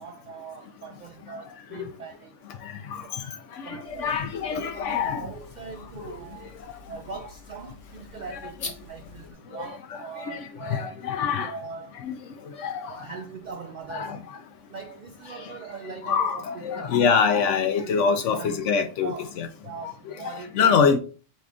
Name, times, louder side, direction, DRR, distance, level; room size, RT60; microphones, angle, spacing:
voice 1, 0.0-2.4 2.9-3.2 3.6-4.2 4.5-6.6 6.9-12.0 12.9-14.2 14.7-17.3 17.8-17.9 18.3-18.7 19.0-19.4 19.6-20.8, right 5 dB, 65° right, 0.4 m, -41 dB
voice 2, 2.6-5.3 6.0-6.2 8.3-8.4 9.5-11.5 12.0-12.2 12.4-13.1 13.9-14.2 15.3-15.5 16.0-19.5 19.8-20.2 20.5-21.0, left 6 dB, 80° left, 0.9 m, -26 dB
sound 1, 3.8-9.3, left 4 dB, 55° left, 0.9 m, -45 dB
5.0 x 2.5 x 3.5 m
omnidirectional pair, 1.3 m